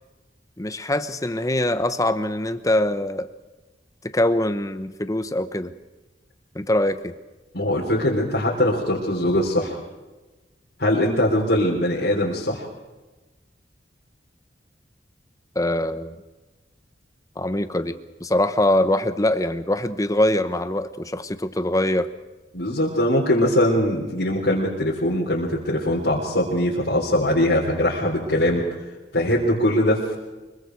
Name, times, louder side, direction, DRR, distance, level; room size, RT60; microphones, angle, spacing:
voice 1, 0.6-3.3 4.0-5.7 6.5-7.1 15.5-16.1 17.4-22.1, left 1 dB, 20° left, 11 dB, 1.0 m, -23 dB
voice 2, 7.5-9.8 10.8-12.7 22.5-28.6 29.1-30.0, left 1 dB, 65° left, -4 dB, 3.9 m, -21 dB
25.0 x 23.0 x 4.7 m, 1.2 s
head